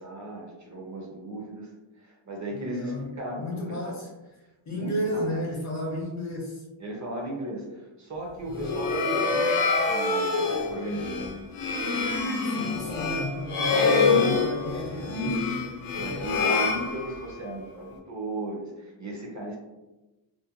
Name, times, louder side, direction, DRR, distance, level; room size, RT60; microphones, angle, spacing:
voice 1, 0.0-1.7 2.0-4.0 4.7-5.2 6.8-9.6 9.9-11.3 13.6-14.4 15.0-15.6 15.9-19.6, right 1 dB, 40° right, -1 dB, 0.5 m, -35 dB
voice 2, 2.5-4.1 4.7-6.6 12.5-16.3, left 1 dB, 40° left, -2 dB, 0.4 m, -33 dB
sound 1, 8.5-17.5, left 4 dB, 80° left, 0.6 m, -26 dB
2.5 x 2.1 x 2.7 m, 1.0 s
wide cardioid pair, 170°, 49 cm